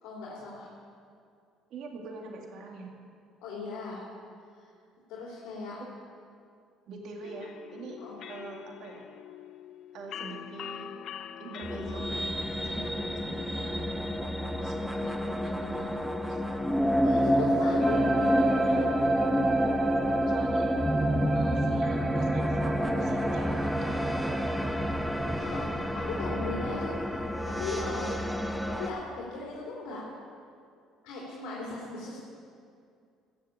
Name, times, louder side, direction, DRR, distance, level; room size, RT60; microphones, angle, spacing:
voice 1, 0.0-0.7 3.4-4.0 4.6-4.7 5.1-5.8 8.0-8.2 12.6-12.9 16.8-18.8 25.4-25.7 25.9-28.1 28.7-30.0 31.0-32.2, left 3 dB, 80° left, -4 dB, 3.0 m, -38 dB
voice 2, 1.7-2.9 6.9-8.0 8.3-9.0 9.9-10.9 11.4-12.1 12.6-13.9 14.6-16.4 20.3-20.7 21.3-23.9, right 3 dB, 65° right, 1 dB, 2.3 m, -44 dB
sound 1, 7.2-12.3, left 9 dB, 60° left, 0.7 m, -44 dB
sound 2, 11.6-28.9, equal, ahead, 0.8 m, -28 dB
sound 3, 17.8-24.7, right 3 dB, 25° right, 1.2 m, -35 dB
16.0 x 6.5 x 8.4 m, 2.4 s
cardioid pair, 120°, 0 cm